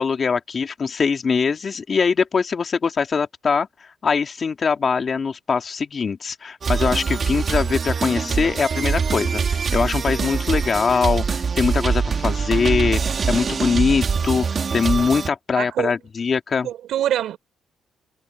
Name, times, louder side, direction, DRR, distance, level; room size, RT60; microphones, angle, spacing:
voice 1, 0.0-3.7 4.0-14.5 14.7-16.7, left 5 dB, 40° left, 2.3 m, -22 dB
sound 1, 6.6-15.3, right 5 dB, 45° right, 2.4 m, -23 dB
voice 2, 15.6-15.9 16.6-17.4, right 11 dB, 75° right, 3.6 m, -24 dB
cardioid pair, 90°, 0 cm